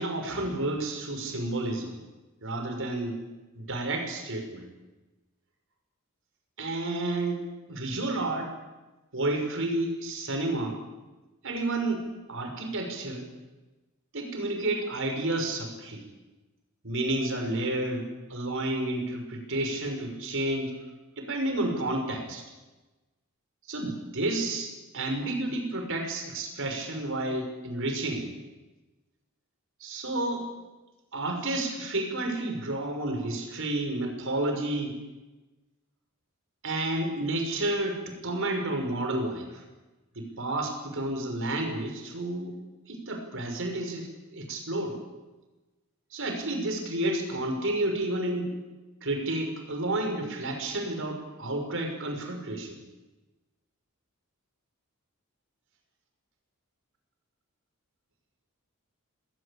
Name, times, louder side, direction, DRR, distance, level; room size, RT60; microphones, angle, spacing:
voice 1, 0.0-2.0 2.4-3.2 3.5-4.7 6.6-8.5 9.1-10.8 11.4-13.3 14.1-16.1 16.8-20.8 21.2-22.4 23.7-28.3 29.8-30.5 31.1-35.0 36.6-39.6 40.1-42.5 42.9-45.0 46.1-48.5 49.0-52.8, right 2 dB, 65° right, 4 dB, 6.0 m, -31 dB
27.0 x 20.5 x 8.7 m, 1.1 s
head